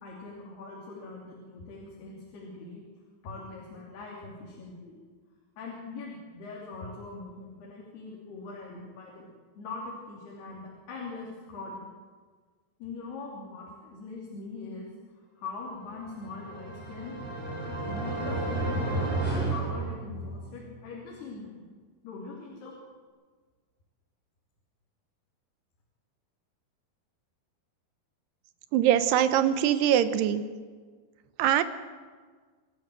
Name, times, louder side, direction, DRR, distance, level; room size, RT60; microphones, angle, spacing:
voice 1, 0.0-2.8 3.2-5.0 5.6-9.3 9.6-11.9 12.8-17.2 17.4-21.6 22.0-22.7, left 3 dB, 75° left, -3 dB, 5.0 m, -42 dB
sound 1, 16.1-20.5, right 2 dB, ahead, 5.4 m, -32 dB
voice 2, 28.7-30.4 31.4-31.6, right 10 dB, 85° right, 11 dB, 3.0 m, -23 dB
27.5 x 12.5 x 7.8 m, 1.5 s
omnidirectional pair, 4.7 m